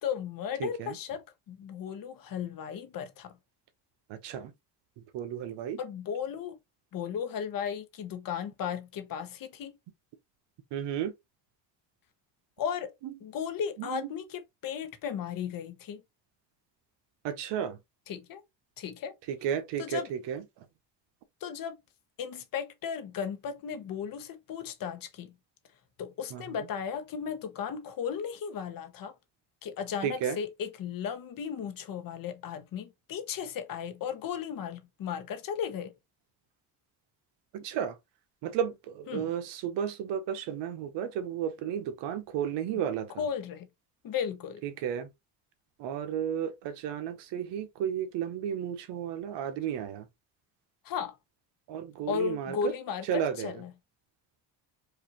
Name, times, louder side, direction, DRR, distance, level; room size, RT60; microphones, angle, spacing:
voice 1, 0.0-3.4 5.8-6.6 6.9-9.8 12.6-12.9 13.2-16.0 18.1-18.4 18.8-19.1 19.8-20.1 21.4-21.8 22.2-25.3 26.0-29.1 29.6-35.9 39.1-39.3 43.2-43.7 44.0-44.6 50.8-51.2 52.1-53.7, left 7 dB, 55° left, 1.0 m, -35 dB
voice 2, 0.6-1.0 4.1-4.5 5.1-5.8 10.7-11.1 13.0-13.1 13.8-14.1 17.2-17.8 19.3-20.7 26.3-26.7 30.0-30.4 37.5-38.0 38.4-43.3 44.6-45.1 45.8-50.1 51.7-52.7 53.0-53.6, right 9 dB, 80° right, 0.9 m, -33 dB
4.9 x 2.6 x 2.9 m
cardioid pair, 120°, 42 cm